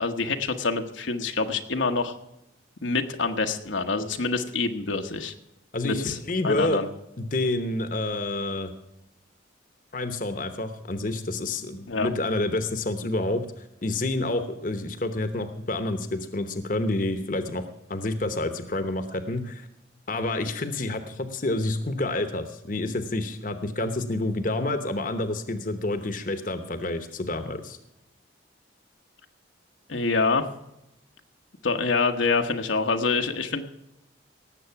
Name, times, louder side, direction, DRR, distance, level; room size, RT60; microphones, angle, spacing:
voice 1, 0.0-2.2 2.8-5.3 5.8-6.2 6.4-6.9 11.9-12.1 29.9-30.5 31.6-33.6, left 4 dB, 80° left, 5 dB, 1.1 m, -26 dB
voice 2, 5.7-6.8 7.2-8.7 9.9-13.4 13.8-17.6 17.9-19.7 20.1-27.8, left 2 dB, 45° left, 9 dB, 1.0 m, -28 dB
18.0 x 7.8 x 5.8 m, 0.87 s
head